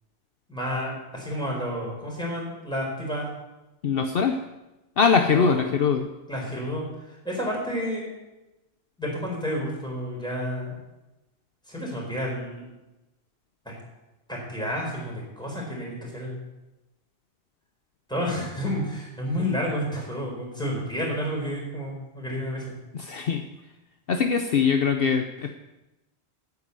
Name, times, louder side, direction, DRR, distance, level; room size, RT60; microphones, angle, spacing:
voice 1, 0.5-3.3 5.3-5.7 6.3-8.1 9.0-10.8 11.7-12.6 13.6-13.7 14.3-16.3 18.1-22.7, equal, 5° left, -3 dB, 4.7 m, -30 dB
voice 2, 3.8-4.4 5.0-6.1 23.0-23.4 24.1-25.6, left 6 dB, 60° left, 6 dB, 0.9 m, -22 dB
9.6 x 9.6 x 8.1 m, 1.0 s
omnidirectional pair, 1.1 m